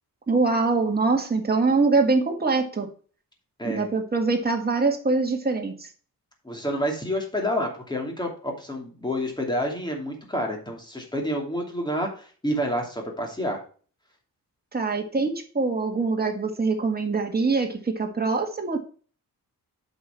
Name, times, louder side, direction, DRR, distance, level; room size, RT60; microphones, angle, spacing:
voice 1, 0.3-2.9 3.6-5.7 14.7-18.8, right 3 dB, 25° right, 3 dB, 1.9 m, -23 dB
voice 2, 6.4-13.6, equal, 10° left, 1 dB, 2.7 m, -29 dB
8.0 x 6.3 x 4.5 m, 0.40 s
wide cardioid pair, 130°, 36 cm